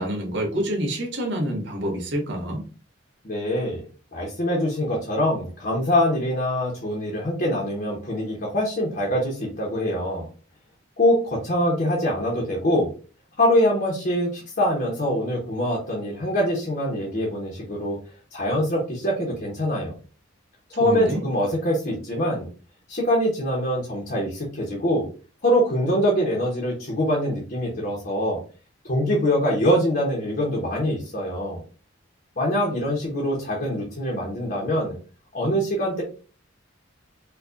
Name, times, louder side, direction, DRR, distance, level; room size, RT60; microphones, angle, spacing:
voice 1, 0.0-2.7 20.8-21.2, right 1 dB, 65° right, 0 dB, 1.1 m, -27 dB
voice 2, 3.2-3.8 4.1-10.3 11.0-12.9 13.4-18.0 18.3-19.9 20.7-22.5 22.9-25.1 25.4-28.4 28.8-31.6 32.4-35.0 35.3-36.0, equal, 50° left, -3 dB, 0.9 m, -24 dB
4.5 x 2.3 x 2.5 m, 0.37 s
head